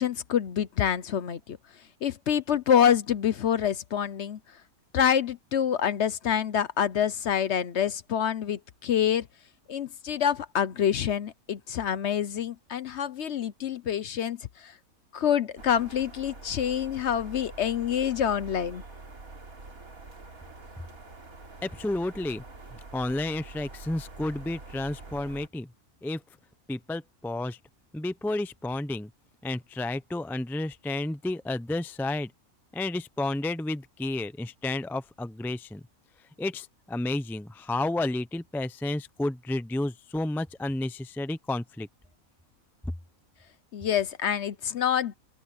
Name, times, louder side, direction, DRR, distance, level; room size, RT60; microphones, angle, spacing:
voice 1, 0.0-1.6 2.0-4.4 4.9-9.3 9.7-14.7 15.1-18.8 43.7-45.2, left 9 dB, 55° left, 0.9 m, -26 dB
sound 1, 15.6-25.5, right 3 dB, 75° right, 3.6 m, -46 dB
voice 2, 21.6-22.4 22.9-25.7 26.0-26.2 26.7-27.6 27.9-29.1 29.4-32.3 32.7-35.8 36.4-41.9, left 2 dB, 5° left, 0.3 m, -31 dB
open air
omnidirectional pair, 1.5 m